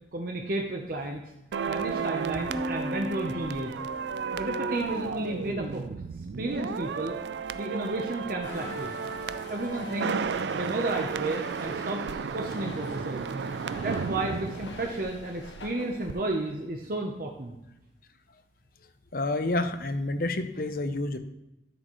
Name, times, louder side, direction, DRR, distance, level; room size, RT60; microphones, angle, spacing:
voice 1, 0.1-1.2 1.7-3.7 4.3-5.8 6.4-7.1 7.5-9.0 9.5-10.3 10.5-12.0 12.3-13.3 13.8-17.5, right 2 dB, 50° right, 1 dB, 0.8 m, -32 dB
sound 1, 1.5-15.7 15.9-16.1, right 6 dB, 70° right, 0.3 m, -33 dB
sound 2, 2.5-4.9, left 1 dB, 15° right, 1.3 m, -37 dB
sound 3, 8.4-16.6, left 2 dB, 75° left, 1.2 m, -45 dB
voice 2, 19.1-21.2, left 2 dB, 50° left, 10 dB, 0.7 m, -29 dB
12.0 x 6.7 x 3.1 m, 0.95 s
head